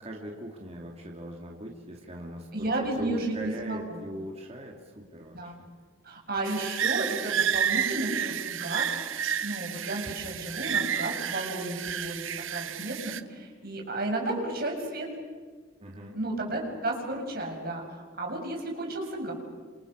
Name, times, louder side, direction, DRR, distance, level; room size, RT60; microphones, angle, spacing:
voice 1, 0.0-5.7 15.8-16.1, equal, 30° right, 0 dB, 2.9 m, -40 dB
voice 2, 2.5-4.0 5.3-5.5 6.0-8.9 9.1-15.1 16.1-17.8 18.2-19.3, right 2 dB, 50° right, 1 dB, 6.9 m, -33 dB
sound 1, 6.5-13.2, right 8 dB, 75° right, 0.9 m, -30 dB
29.0 x 27.5 x 6.7 m, 1.5 s
head